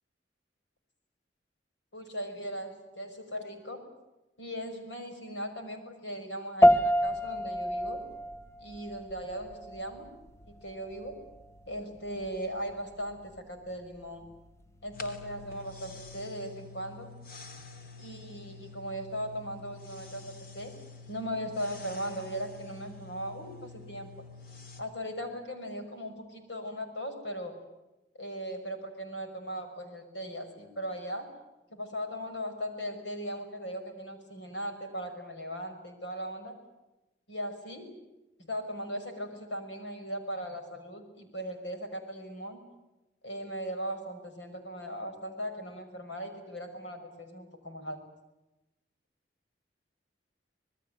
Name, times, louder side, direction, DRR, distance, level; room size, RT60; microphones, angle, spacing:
voice 1, 1.9-3.8 4.4-8.0 8.6-10.1 10.4-11.2 11.7-14.2 14.8-17.1 18.0-20.7 21.1-24.1 24.8-27.5 28.1-31.3 31.7-36.6 37.3-37.9 38.4-42.6 43.2-48.0, equal, 75° left, 5 dB, 5.9 m, -38 dB
sound 1, 6.6-16.2, equal, 15° left, 0.9 m, -30 dB
sound 2, 14.9-24.8, left 4 dB, 55° left, 2.8 m, -48 dB
27.0 x 20.5 x 9.1 m, 1.0 s
head